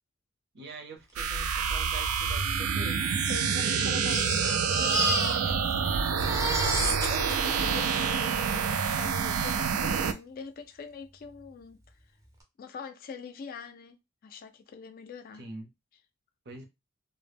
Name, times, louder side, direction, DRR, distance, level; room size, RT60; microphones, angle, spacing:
voice 1, 0.5-3.2 4.2-4.9 6.8-7.2 15.3-15.7 16.4-16.6, right 3 dB, 50° right, 0.7 m, -45 dB
sound 1, 1.2-10.1, right 6 dB, 80° right, 0.3 m, -27 dB
Crying sobbing, 1.7-1.8 2.0-2.1 2.9-5.8 6.0-8.6 9.4-9.5 9.9-10.0, right 2 dB, 15° right, 0.5 m, -32 dB
voice 2, 3.3-11.8 12.6-14.0 14.2-15.4, left 5 dB, 45° left, 0.3 m, -43 dB
2.1 x 2.0 x 3.3 m
head